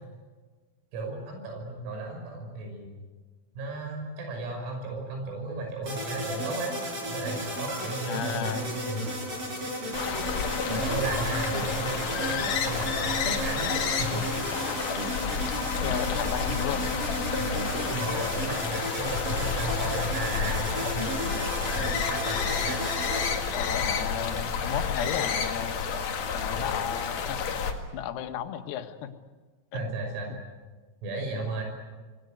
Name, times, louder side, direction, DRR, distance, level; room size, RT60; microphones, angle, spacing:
voice 1, 0.9-2.9 3.6-6.8 7.0-9.1 10.7-14.2 14.5-14.7 17.4-22.9 29.7-30.4 31.0-31.6, right 2 dB, 90° right, 2 dB, 8.6 m, -35 dB
sound 1, 5.8-23.3, right 1 dB, 25° right, 6.1 m, -34 dB
voice 2, 8.0-8.7 15.8-16.9 23.5-25.8 26.3-27.4 27.9-29.1 29.7-29.8, left 10 dB, 90° left, 7 dB, 4.2 m, -33 dB
sound 2, 8.7-9.3 10.1-10.4 10.8-12.2 12.6-13.7 14.3-15.6 16.1-16.9 17.4-18.9 19.3-20.1 20.5-21.2, right 4 dB, 55° right, 5.3 m, -49 dB
sound 3, 9.9-27.7, left 6 dB, 50° left, 2.8 m, -30 dB
26.5 x 21.0 x 9.2 m, 1.4 s
omnidirectional pair, 5.9 m